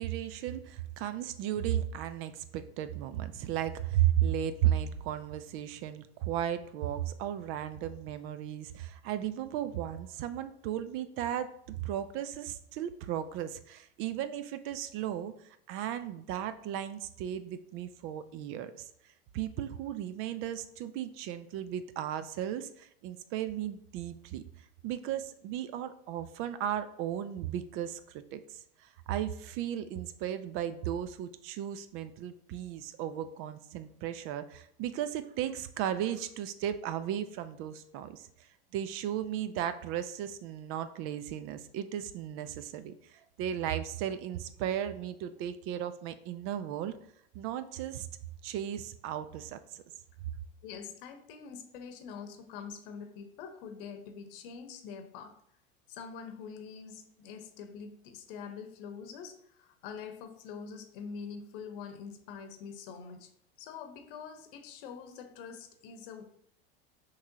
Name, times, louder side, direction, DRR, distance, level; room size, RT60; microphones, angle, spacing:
voice 1, 0.0-11.5 11.8-18.9 19.3-24.4 24.8-38.5 38.7-46.9 47.3-48.1 48.4-49.8, right 11 dB, 45° right, 12 dB, 0.4 m, -35 dB
voice 2, 50.6-55.3 55.9-63.3 63.6-66.2, left 6 dB, 65° left, 7 dB, 0.9 m, -45 dB
5.7 x 3.2 x 2.8 m, 0.69 s
hypercardioid pair, 95°, 30 cm